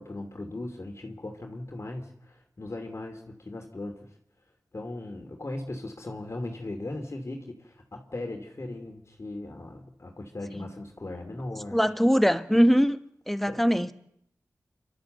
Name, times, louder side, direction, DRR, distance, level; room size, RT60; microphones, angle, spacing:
voice 1, 0.0-4.1 4.7-11.8 13.4-13.6, left 2 dB, 50° left, 2.8 m, -38 dB
voice 2, 11.7-13.0 13.3-13.9, equal, 5° left, 1.3 m, -22 dB
29.5 x 12.5 x 8.0 m
wide cardioid pair, 55°, 6 cm